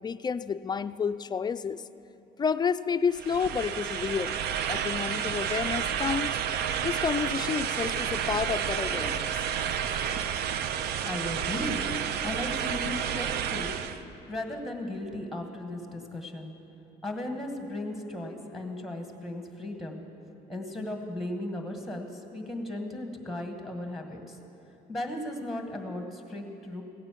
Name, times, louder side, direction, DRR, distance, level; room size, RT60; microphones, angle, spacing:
voice 1, 0.0-1.8 2.4-4.4 4.7-6.4 6.8-9.3, left 6 dB, 25° left, 13 dB, 0.4 m, -30 dB
sound 1, 3.1-14.0, right 8 dB, 70° right, 0.6 m, -30 dB
voice 2, 10.7-13.8 14.3-16.6 17.0-20.0 20.5-24.4 24.9-26.8, left 1 dB, ahead, 4 dB, 1.7 m, -36 dB
16.5 x 9.6 x 7.6 m, 3.0 s
cardioid pair, 110°, 17 cm